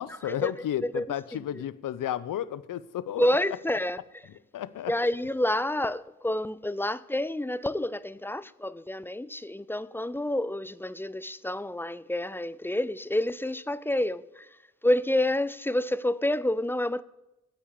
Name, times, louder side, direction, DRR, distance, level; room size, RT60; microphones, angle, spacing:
voice 1, 0.0-3.3 4.5-4.9, left 11 dB, 70° left, 0.7 m, -32 dB
voice 2, 3.2-4.0 4.9-14.5 14.8-17.0, left 1 dB, 5° left, 0.3 m, -28 dB
10.0 x 8.6 x 8.7 m
cardioid pair, 105°, 35 cm